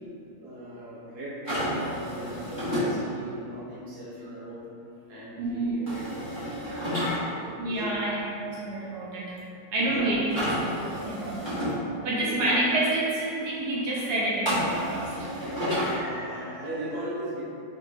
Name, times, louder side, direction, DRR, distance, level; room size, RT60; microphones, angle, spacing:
voice 1, 0.4-4.7 5.1-6.1 6.4-7.9 9.8-10.2 11.9-12.6 15.4-17.4, equal, 45° right, -7 dB, 1.0 m, -37 dB
sound 1, 1.4-2.9 5.9-7.2 10.3-11.7 14.5-16.0, equal, 15° right, 1.3 m, -30 dB
voice 2, 5.4-5.8 7.6-9.4 9.7-10.8 11.0-11.4 12.0-15.1, right 1 dB, 70° right, -6 dB, 1.2 m, -28 dB
4.5 x 2.6 x 3.2 m, 2.6 s
omnidirectional pair, 1.9 m